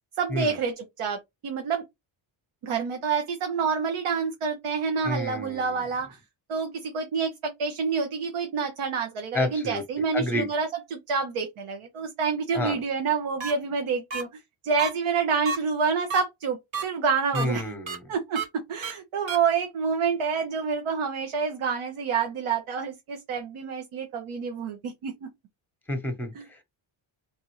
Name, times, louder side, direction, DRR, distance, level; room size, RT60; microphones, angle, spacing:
voice 1, 0.2-1.8 2.6-6.2 6.5-14.3 14.6-17.7 18.1-18.4 18.7-25.3 26.3-26.4, right 5 dB, 80° right, 1.1 m, -28 dB
voice 2, 5.0-5.8 9.3-9.8 10.1-10.5 12.5-12.8 17.3-18.0 25.9-26.6, left 1 dB, 5° left, 1.0 m, -29 dB
sound 1, 13.4-13.5 14.1-14.2 14.8-14.9 15.5-15.6 16.1-16.2 16.7-16.8 17.3-17.5 17.9-18.0 18.4-18.5 18.8-18.9 19.3-19.4, right 5 dB, 65° right, 1.9 m, -30 dB
4.0 x 3.5 x 3.1 m
wide cardioid pair, 140°, 49 cm